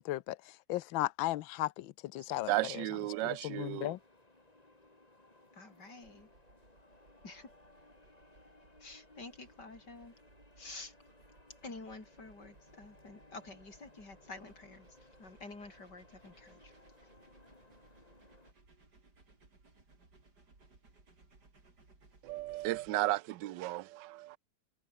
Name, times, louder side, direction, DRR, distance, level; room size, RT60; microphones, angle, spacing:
voice 1, 0.0-2.5 3.4-4.0, left 16 dB, 75° left, 1.5 m, -35 dB
sound 1, 2.3-18.5, left 2 dB, 20° left, 3.3 m, -62 dB
voice 2, 2.3-3.9 22.2-24.4, right 17 dB, 70° right, 1.2 m, -34 dB
voice 3, 5.5-6.3 7.2-7.5 8.8-10.2 10.6-11.0 11.6-16.7 17.0-17.1, left 3 dB, 50° left, 5.6 m, -49 dB
sound 2, 6.0-22.9, right 3 dB, 50° right, 5.1 m, -64 dB
omnidirectional pair, 2.3 m